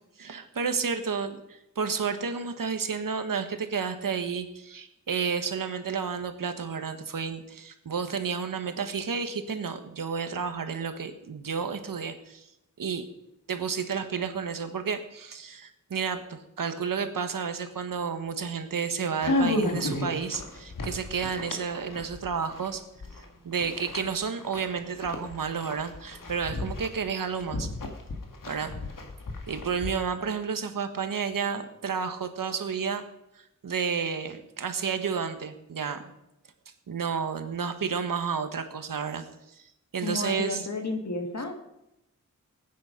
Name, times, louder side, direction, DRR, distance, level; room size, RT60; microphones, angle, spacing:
voice 1, 0.2-12.5 12.8-13.1 13.5-22.8 23.4-27.7 28.5-28.7 29.5-33.0 33.3-36.1 36.9-39.7 39.9-40.6, right 6 dB, 80° right, 8 dB, 1.5 m, -31 dB
sound 1, 19.2-23.3 23.6-29.9, left 1 dB, 75° left, 2.1 m, -33 dB
voice 2, 40.0-41.5, left 2 dB, 55° left, 5 dB, 2.3 m, -32 dB
20.0 x 9.4 x 5.3 m, 0.87 s
wide cardioid pair, 110°, 33 cm